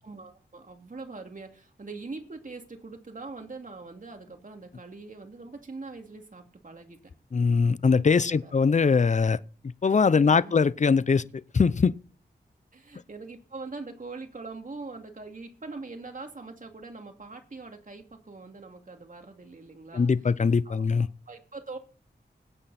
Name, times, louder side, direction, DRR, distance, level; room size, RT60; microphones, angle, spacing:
voice 1, 0.0-7.0 8.2-8.5 10.1-10.5 12.7-20.1 20.6-21.8, right 3 dB, 45° right, 2.7 m, -42 dB
voice 2, 7.3-9.4 9.8-11.9 19.9-21.1, left 5 dB, 40° left, 0.6 m, -22 dB
20.5 x 8.8 x 4.3 m
wide cardioid pair, 60°, 18 cm